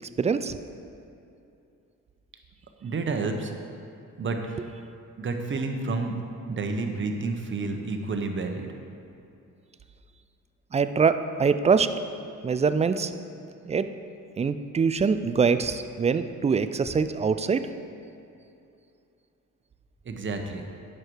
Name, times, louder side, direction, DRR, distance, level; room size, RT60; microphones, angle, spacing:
voice 1, 0.2-0.5 10.7-11.9 12.4-13.1 13.7-13.9 14.4-17.7, right 5 dB, 20° right, 11 dB, 0.4 m, -24 dB
voice 2, 2.8-3.5 4.2-4.4 5.2-6.1 6.5-8.7 20.0-20.6, right 3 dB, 40° right, 4 dB, 1.0 m, -30 dB
9.5 x 6.6 x 4.6 m, 2.6 s
cardioid pair, 90°, 30 cm